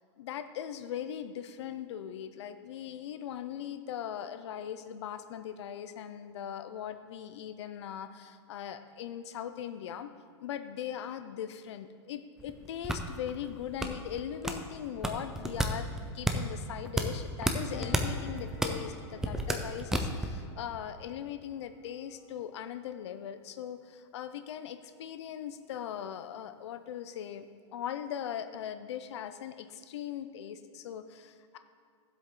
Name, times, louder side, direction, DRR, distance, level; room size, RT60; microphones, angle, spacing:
voice 1, 0.2-10.1 10.4-27.5 27.7-31.6, left 9 dB, 75° left, 10 dB, 0.6 m, -40 dB
sound 1, 12.4-20.4, right 1 dB, 5° right, 0.5 m, -33 dB
Piano, 17.7-24.8 25.0-25.3, left 6 dB, 35° left, 1.0 m, -53 dB
15.0 x 7.8 x 3.8 m, 2.3 s
supercardioid pair, 160°, 15 cm